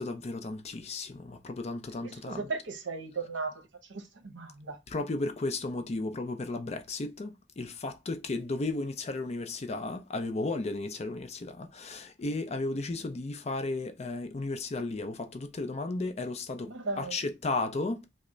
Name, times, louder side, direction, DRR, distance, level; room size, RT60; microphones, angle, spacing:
voice 1, 0.0-2.5 4.9-18.1, left 2 dB, 35° left, 0.5 m, -34 dB
voice 2, 2.0-3.6 3.9-4.8 16.6-17.2, right 3 dB, 70° right, 0.8 m, -36 dB
3.1 x 2.1 x 3.7 m
head